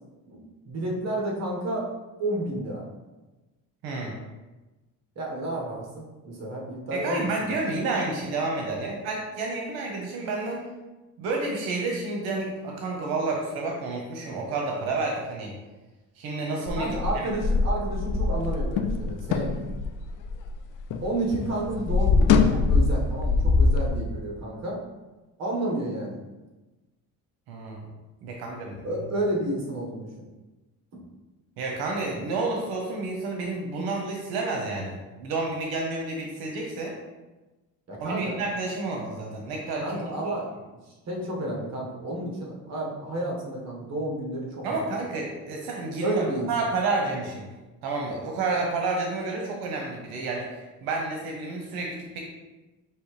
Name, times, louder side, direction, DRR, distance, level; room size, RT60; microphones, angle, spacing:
voice 1, 0.7-1.9 2.2-2.9 5.1-7.6 16.7-19.6 21.0-24.8 25.4-26.2 28.8-30.1 37.9-38.4 39.8-45.0 46.0-46.5, right 1 dB, 45° right, -2 dB, 1.4 m, -31 dB
voice 2, 3.8-4.1 6.9-10.7 11.2-15.5 16.2-17.3 27.5-27.9 28.2-28.9 31.6-36.9 38.0-40.0 44.6-47.5 47.8-52.2, right 3 dB, 90° right, 0 dB, 0.8 m, -30 dB
sound 1, 16.7-21.1 21.3-23.9, left 4 dB, 60° left, 0.5 m, -23 dB
5.4 x 2.9 x 3.2 m, 1.1 s
cardioid pair, 105°, 36 cm